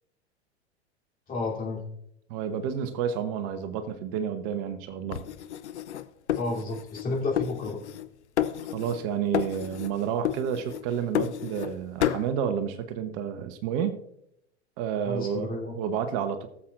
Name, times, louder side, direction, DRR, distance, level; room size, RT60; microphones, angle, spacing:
voice 1, 1.3-1.8 6.4-7.8 15.0-15.7, left 3 dB, 25° left, -3 dB, 3.3 m, -31 dB
voice 2, 2.3-5.2 8.7-14.0 14.8-15.5 15.7-16.5, right 8 dB, 45° right, 10 dB, 0.9 m, -30 dB
sound 1, 5.1-7.1 7.4-8.1 8.4-9.1 9.3-9.9 10.2-11.7 12.0-12.3, left 11 dB, 80° left, 0.6 m, -30 dB
18.5 x 7.4 x 2.5 m, 0.77 s
hypercardioid pair, 95°, 34 cm